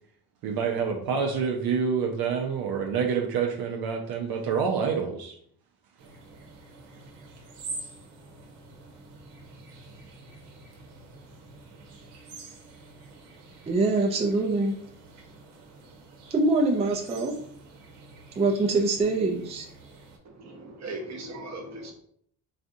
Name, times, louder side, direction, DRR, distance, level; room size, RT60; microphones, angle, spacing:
voice 1, 0.4-5.3, right 6 dB, 60° right, 2 dB, 0.6 m, -27 dB
sound 1, 6.0-20.2, right 3 dB, 80° right, 0.9 m, -47 dB
voice 2, 13.7-14.7 16.3-17.3 18.4-19.7, right 3 dB, 15° right, 0 dB, 0.5 m, -24 dB
voice 3, 20.2-21.9, right 2 dB, 40° right, 2 dB, 0.9 m, -38 dB
4.1 x 2.3 x 2.6 m, 0.65 s
cardioid pair, 85°, 41 cm